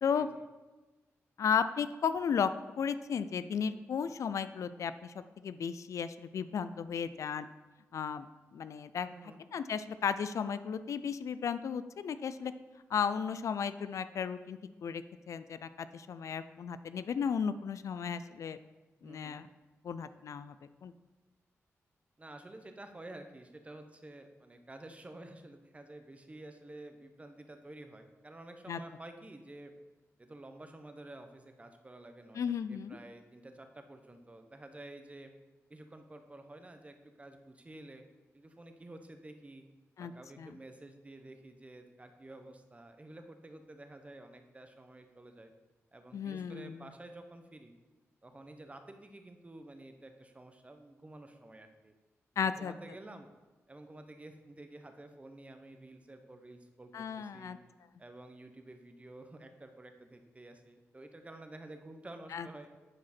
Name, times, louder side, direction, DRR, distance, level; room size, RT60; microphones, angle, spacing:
voice 1, 1.4-5.1 5.4-7.5 7.9-8.3 8.5-9.1 9.5-12.5 12.9-18.6 19.0-19.5 19.8-20.5 20.8-20.9 28.7-28.8 32.4-33.0 40.0-40.1 40.4-40.5 46.1-46.9 52.4-52.7 56.9-57.6 62.3-62.5, left 7 dB, 75° left, 13 dB, 0.4 m, -34 dB
voice 2, 9.1-9.4 19.0-19.4 22.2-29.7 30.2-32.4 32.7-35.3 35.7-38.0 38.3-39.6 40.0-45.5 45.9-47.8 48.2-51.9 52.4-53.3 53.7-57.6 58.0-62.7, right 2 dB, 25° right, 6 dB, 1.0 m, -51 dB
9.7 x 5.1 x 4.3 m, 1.2 s
cardioid pair, 70°, 5 cm